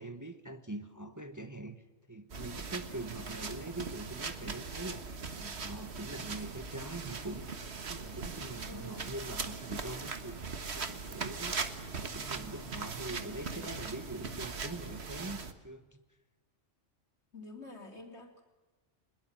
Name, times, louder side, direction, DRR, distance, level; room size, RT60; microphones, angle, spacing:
voice 1, 0.0-16.0, right 2 dB, 15° right, 8 dB, 1.1 m, -43 dB
sound 1, 2.3-15.5, right 4 dB, 65° right, 1.7 m, -40 dB
voice 2, 8.7-9.1 17.3-18.4, left 2 dB, 65° left, 3 dB, 3.7 m, -48 dB
23.5 x 21.5 x 7.4 m, 1.2 s
omnidirectional pair, 1.2 m